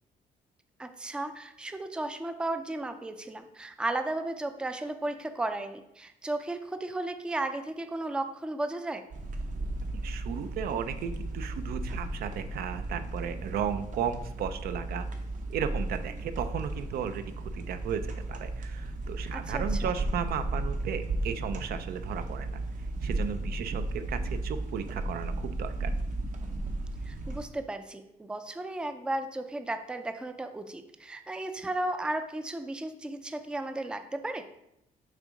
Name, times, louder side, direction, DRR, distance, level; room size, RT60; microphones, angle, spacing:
voice 1, 0.8-9.0 19.3-19.9 27.1-34.5, right 2 dB, 5° right, 8 dB, 0.4 m, -34 dB
sound 1, 9.1-27.5, right 2 dB, 55° right, 0.8 m, -35 dB
voice 2, 9.9-15.1 15.5-22.6 23.0-25.9, right 8 dB, 75° right, 10 dB, 0.5 m, -35 dB
6.5 x 3.6 x 5.0 m, 0.81 s
cardioid pair, 140°, 16 cm